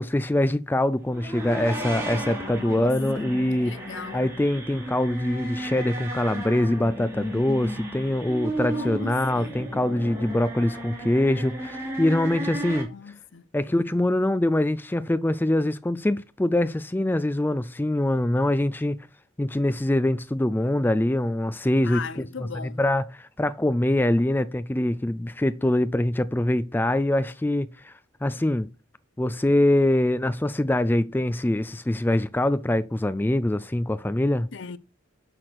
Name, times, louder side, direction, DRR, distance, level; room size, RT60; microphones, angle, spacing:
voice 1, 0.0-3.8 4.1-12.9 13.5-19.0 19.4-22.2 22.6-27.9 28.2-28.7 29.2-34.5, left 1 dB, 10° left, 0.3 m, -24 dB
sound 1, 1.1-12.8, right 1 dB, 15° right, 2.5 m, -34 dB
voice 2, 2.4-3.3 3.6-4.3 8.6-9.6 12.9-13.5 21.8-22.8 34.5-34.8, left 5 dB, 60° left, 0.5 m, -38 dB
6.1 x 5.9 x 6.6 m
head